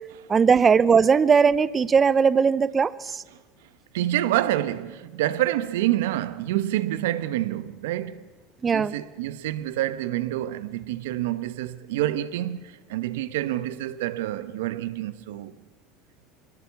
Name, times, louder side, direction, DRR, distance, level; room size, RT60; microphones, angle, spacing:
voice 1, 0.3-3.2 8.6-8.9, right 6 dB, 25° right, 0.6 m, -19 dB
voice 2, 3.9-8.3 8.7-15.5, right 14 dB, 85° right, 1.0 m, -27 dB
23.0 x 19.5 x 7.0 m
supercardioid pair, 105°, 0 cm